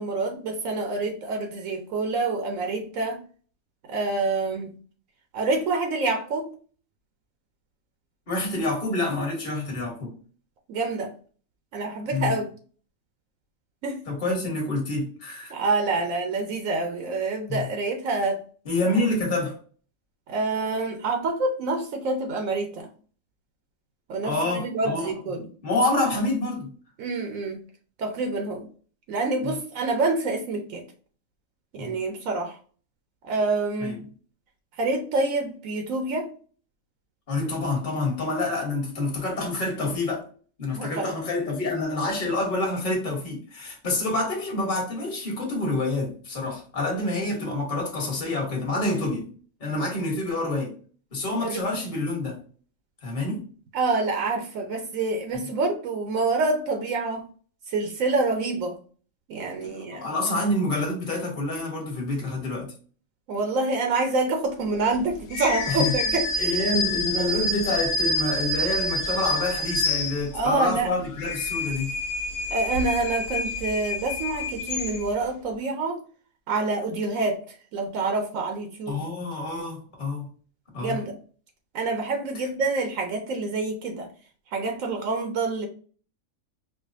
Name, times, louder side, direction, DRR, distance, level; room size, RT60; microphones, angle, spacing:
voice 1, 0.0-3.2 3.9-4.7 5.3-6.5 10.7-11.1 11.7-12.5 13.8-14.0 15.5-18.4 18.8-18.9 20.3-22.9 24.1-25.4 27.0-27.6 28.0-28.7 29.1-30.8 31.7-32.6 33.2-34.0 34.8-36.3 40.7-41.1 51.4-51.6 53.7-57.2 57.7-58.8 59.3-60.1 63.3-66.6 70.3-70.9 72.5-76.0 76.5-77.4 77.7-79.0 80.8-81.1 81.7-84.1 84.5-85.7, right 3 dB, 75° right, 3 dB, 1.0 m, -27 dB
voice 2, 8.3-10.1 12.1-12.4 14.1-15.5 17.5-17.7 18.6-19.6 24.2-25.1 25.6-26.7 29.4-29.5 31.7-32.0 33.8-34.0 37.3-40.2 40.6-49.3 49.6-50.7 51.1-52.4 53.0-53.4 59.8-62.7 65.7-65.9 66.4-71.9 78.9-80.3 80.7-81.0, left 2 dB, 35° left, -1 dB, 1.4 m, -27 dB
sound 1, 65.3-70.6 71.0-75.3, left 2 dB, 90° left, 1.2 m, -28 dB
4.7 x 2.2 x 2.5 m, 0.41 s
omnidirectional pair, 1.4 m